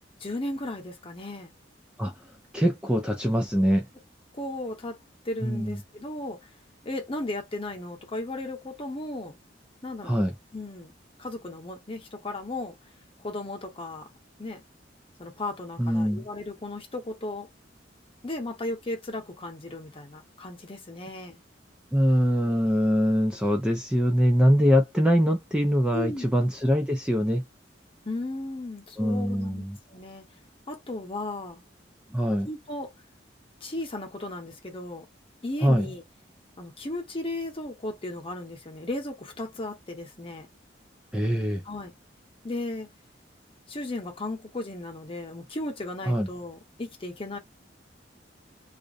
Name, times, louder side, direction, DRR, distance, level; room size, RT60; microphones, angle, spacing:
voice 1, 0.2-1.5 4.3-5.0 5.2-6.5 6.8-9.4 9.8-10.2 10.5-10.9 11.2-12.7 13.2-14.1 14.4-14.6 15.2-17.5 18.2-21.4 25.9-26.3 28.0-29.6 29.9-30.2 30.7-31.6 32.4-32.9 33.6-35.1 35.4-36.0 36.6-40.5 41.6-41.9 42.4-42.9 43.7-47.4, left 2 dB, 30° left, 0.8 m, -35 dB
voice 2, 2.5-3.9 5.4-5.8 10.0-10.3 15.8-16.2 21.9-27.4 29.0-29.8 32.1-32.5 35.6-35.9 41.1-41.6 46.1-46.3, equal, 5° right, 0.3 m, -23 dB
2.5 x 2.1 x 2.4 m
head